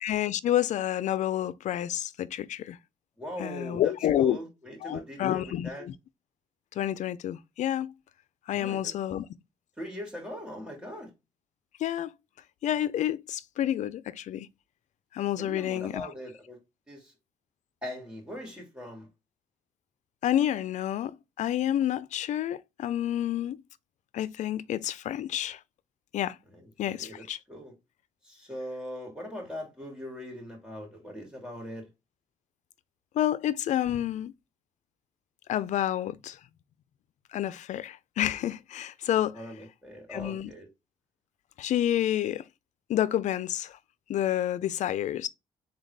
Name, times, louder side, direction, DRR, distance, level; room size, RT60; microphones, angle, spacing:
voice 1, 0.0-2.8 3.4-4.4 4.8-5.9 6.8-7.9 8.5-9.3 11.8-12.1 12.6-14.5 15.1-16.1 20.2-23.6 24.1-25.6 26.1-26.4 26.8-27.4 33.1-34.3 35.5-36.4 37.3-39.4 40.1-40.5 41.6-42.4 42.9-43.8 44.1-45.3, left 11 dB, 75° left, 0.5 m, -29 dB
voice 2, 3.2-5.9 8.5-8.9 9.8-11.1 15.4-16.6 16.9-17.1 17.8-19.1 26.5-27.7 28.2-31.9 39.3-40.7, equal, 10° right, 3.1 m, -41 dB
4.0 x 3.9 x 3.3 m
cardioid pair, 95°, 12 cm